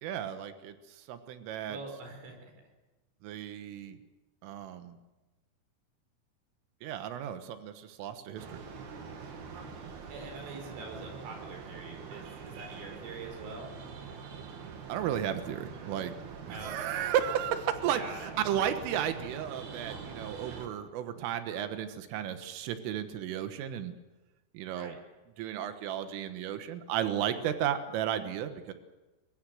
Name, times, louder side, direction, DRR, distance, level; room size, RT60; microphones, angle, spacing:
voice 1, 0.0-1.8 3.2-4.0 4.4-5.0 6.8-8.6 14.9-16.2 16.5-23.9 24.5-25.0 25.4-28.7, right 10 dB, 90° right, 9 dB, 3.9 m, -34 dB
voice 2, 1.7-2.5 9.5-9.7 10.1-13.7 16.5-16.9 17.9-18.3 24.7-25.0, right 3 dB, 75° right, 3 dB, 7.6 m, -44 dB
sound 1, 8.4-20.7, right 5 dB, 60° right, 4.0 m, -44 dB
23.0 x 22.0 x 7.8 m, 1.1 s
omnidirectional pair, 5.6 m